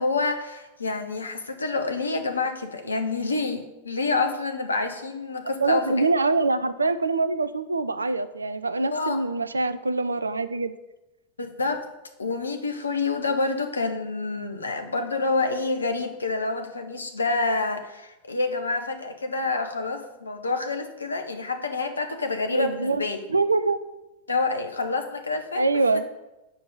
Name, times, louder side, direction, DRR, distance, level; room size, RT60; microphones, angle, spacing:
voice 1, 0.0-6.0 8.9-9.2 11.4-11.8 12.2-23.2 24.3-25.6, left 3 dB, 75° left, 6 dB, 0.7 m, -27 dB
voice 2, 5.6-10.7 22.5-23.0 23.3-23.8 25.5-26.1, right 3 dB, 80° right, 14 dB, 0.4 m, -24 dB
7.0 x 5.2 x 7.3 m, 1.0 s
figure-of-eight pair, 90°, 0 cm